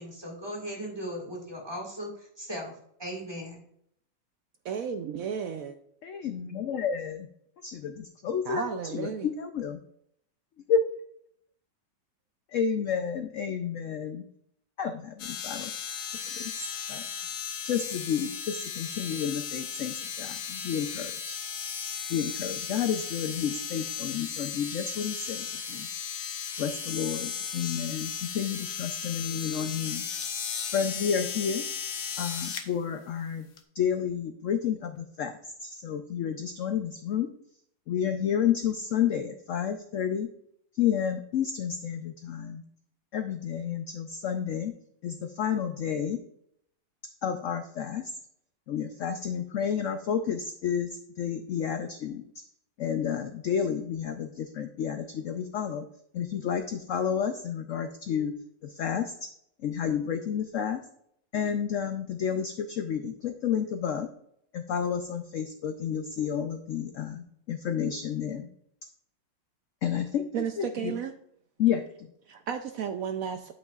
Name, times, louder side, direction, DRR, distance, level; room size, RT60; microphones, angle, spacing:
voice 1, 0.0-2.7 3.0-3.6, equal, 15° right, -2 dB, 1.8 m, -37 dB
voice 2, 4.6-5.8 8.4-9.3 70.3-71.2 72.3-73.5, right 7 dB, 75° right, 7 dB, 0.7 m, -33 dB
voice 3, 6.0-7.3 7.6-9.8 10.7-10.8 12.5-14.2 14.8-15.7 16.2-16.6 16.9-17.0 17.6-21.3 22.1-25.9 26.6-30.0 30.7-31.6 32.2-37.3 37.9-40.3 40.7-42.6 43.1-44.7 45.0-46.2 47.2-48.1 48.7-52.2 52.8-55.8 56.1-58.3 58.6-59.1 59.6-60.8 61.3-64.1 64.5-68.5 69.8-70.3 70.6-70.9 71.6-72.1, left 8 dB, 90° left, 7 dB, 0.6 m, -30 dB
sound 1, 15.2-32.7 33.6-33.7, left 7 dB, 55° left, 1.1 m, -36 dB
8.6 x 8.2 x 2.4 m, 0.70 s
omnidirectional pair, 2.0 m